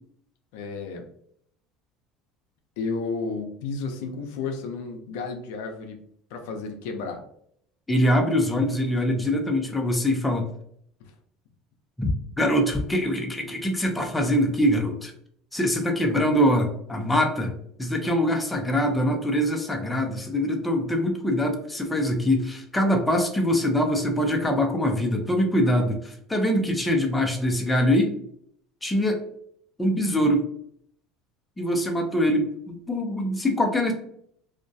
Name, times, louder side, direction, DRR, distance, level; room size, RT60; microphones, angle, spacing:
voice 1, 0.5-1.0 2.8-6.0 6.3-7.2, left 4 dB, 80° left, 4 dB, 0.4 m, -32 dB
voice 2, 7.9-10.5 12.0-12.1 12.4-15.1 15.5-17.5 17.8-28.1 28.8-29.2 29.8-30.5 31.6-33.9, equal, 10° left, 2 dB, 0.5 m, -23 dB
2.3 x 2.1 x 2.6 m, 0.67 s
supercardioid pair, 105°, 0 cm